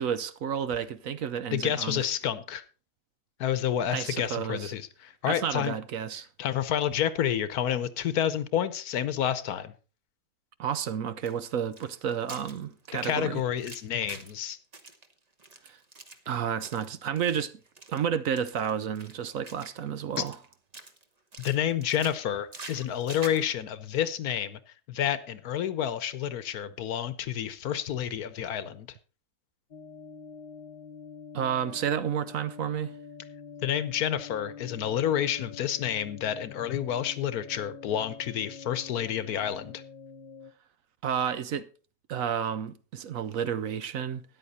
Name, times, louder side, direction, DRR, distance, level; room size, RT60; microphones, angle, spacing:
voice 1, 0.0-2.1 3.9-4.7 5.3-6.3 10.6-13.4 15.7-15.8 16.3-17.5 17.9-20.4 31.3-32.9 41.0-41.7 42.1-44.2, right 8 dB, 65° right, 1.0 m, -31 dB
voice 2, 1.5-2.6 3.4-5.7 6.4-9.7 13.0-14.6 21.4-24.6 24.9-28.9 33.6-39.8, left 10 dB, 75° left, 1.3 m, -29 dB
sound 1, 11.2-14.4 14.7-16.9 17.2-17.4 17.6-18.0 18.4-19.9 20.2-21.0 21.3-23.4, right 3 dB, 30° right, 1.1 m, -46 dB
sound 2, 29.7-40.5, left 6 dB, 35° left, 0.9 m, -46 dB
13.5 x 9.8 x 4.1 m
omnidirectional pair, 1.7 m